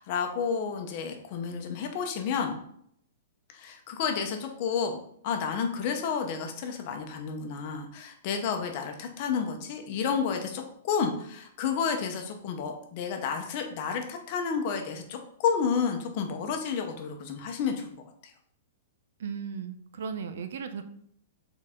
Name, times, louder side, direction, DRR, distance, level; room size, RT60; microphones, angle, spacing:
voice 1, 0.0-2.6 3.5-5.0 5.2-17.8, left 6 dB, 35° left, 4 dB, 0.9 m, -31 dB
voice 2, 19.2-20.8, right 6 dB, 65° right, 9 dB, 0.6 m, -36 dB
6.4 x 4.0 x 3.7 m, 0.67 s
hypercardioid pair, 170°, 0 cm